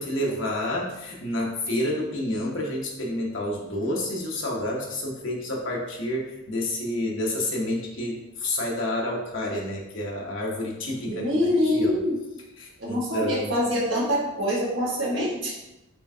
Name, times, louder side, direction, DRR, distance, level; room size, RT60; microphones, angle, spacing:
voice 1, 0.0-11.3 11.6-12.0 12.6-13.6, left 1 dB, 65° left, -2 dB, 0.9 m, -29 dB
voice 2, 11.0-12.2 12.8-15.5, left 1 dB, 60° right, -4 dB, 1.2 m, -25 dB
4.5 x 3.3 x 2.7 m, 0.94 s
head